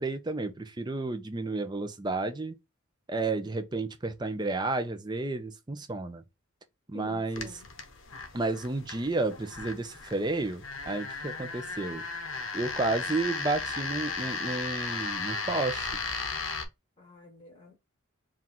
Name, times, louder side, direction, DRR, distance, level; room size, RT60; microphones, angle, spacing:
voice 1, 0.0-2.5 3.1-6.2 6.9-7.6 8.3-12.0 12.5-15.9, right 2 dB, 20° right, 0.5 m, -31 dB
voice 2, 6.9-7.7 17.0-17.8, left 4 dB, 25° left, 1.2 m, -48 dB
sound 1, 7.3-16.6, left 4 dB, 65° left, 0.7 m, -36 dB
3.7 x 2.4 x 4.2 m
head